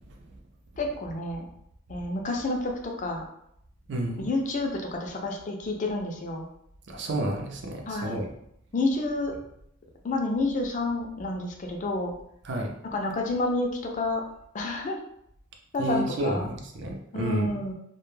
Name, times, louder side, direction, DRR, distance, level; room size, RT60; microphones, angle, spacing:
voice 1, 0.8-1.5 1.9-3.2 4.2-6.5 7.9-8.2 8.7-9.3 10.0-12.1 12.9-14.2 14.5-15.0 15.7-16.5 17.1-17.7, left 2 dB, 35° left, 1 dB, 0.3 m, -29 dB
voice 2, 3.9-4.3 6.9-8.3 12.5-12.7 15.8-17.6, right 1 dB, 55° right, 1 dB, 0.4 m, -30 dB
2.1 x 2.1 x 3.1 m, 0.74 s
head